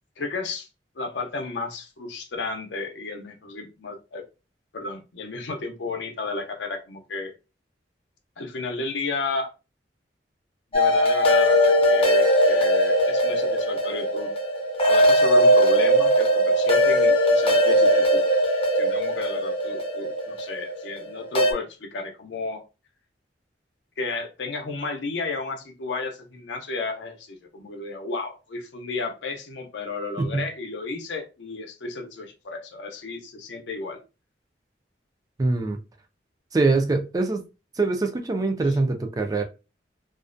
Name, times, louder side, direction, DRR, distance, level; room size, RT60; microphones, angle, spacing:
voice 1, 0.2-0.7 0.9-4.2 4.7-7.3 8.4-9.5 10.7-14.3 14.9-18.2 18.7-22.6 24.0-34.0 38.7-38.8, left 3 dB, 80° left, 0.6 m, -33 dB
sound 1, 10.7-21.5, equal, 30° left, 0.5 m, -20 dB
voice 2, 35.4-35.8 36.5-37.4 37.8-39.4, right 3 dB, 20° right, 0.3 m, -23 dB
2.4 x 2.1 x 2.5 m
head